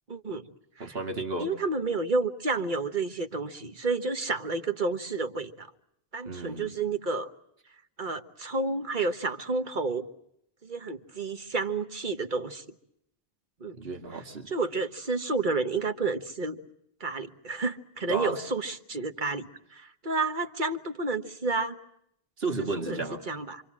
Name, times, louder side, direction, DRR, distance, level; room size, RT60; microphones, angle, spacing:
voice 1, 0.1-0.5 0.8-1.0 1.4-5.7 6.1-7.3 8.0-10.1 10.6-12.6 13.6-13.8 14.1-16.6 17.0-21.8 22.9-23.0 23.3-23.6, right 3 dB, 50° right, 8 dB, 1.5 m, -30 dB
voice 2, 0.8-1.5 6.3-6.7 13.7-14.5 18.1-18.3 22.4-23.2, right 3 dB, 70° right, 4 dB, 2.4 m, -33 dB
27.5 x 25.5 x 7.5 m, 0.75 s
omnidirectional pair, 1.0 m